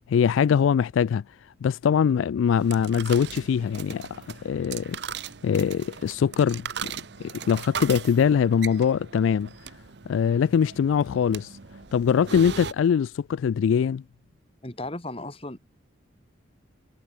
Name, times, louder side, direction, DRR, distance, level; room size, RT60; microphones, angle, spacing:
voice 1, 0.1-1.2 1.6-5.0 5.4-6.9 7.2-9.5 10.1-11.6 11.9-14.0, left 7 dB, 80° left, 0.3 m, -22 dB
sound 1, 2.4-12.7, right 7 dB, 60° right, 0.8 m, -39 dB
voice 2, 14.6-15.6, left 2 dB, 30° left, 2.4 m, -35 dB
head